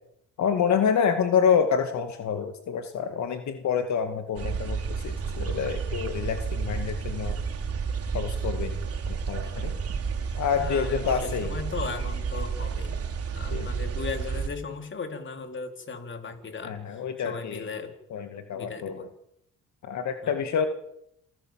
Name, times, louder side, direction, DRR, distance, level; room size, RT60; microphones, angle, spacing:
voice 1, 0.4-7.4 8.1-8.8 9.1-9.7 10.4-11.5 13.5-13.7 16.6-17.7 18.1-19.0 19.8-20.7, left 7 dB, 65° left, 7 dB, 2.3 m, -27 dB
sound 1, 4.4-14.5, right 6 dB, 50° right, 4.2 m, -31 dB
voice 2, 10.5-13.0 13.3-17.9 18.5-19.1 20.2-20.4, left 4 dB, 40° left, 6 dB, 4.0 m, -37 dB
27.5 x 17.0 x 7.7 m, 0.78 s
cardioid pair, 90°, 30 cm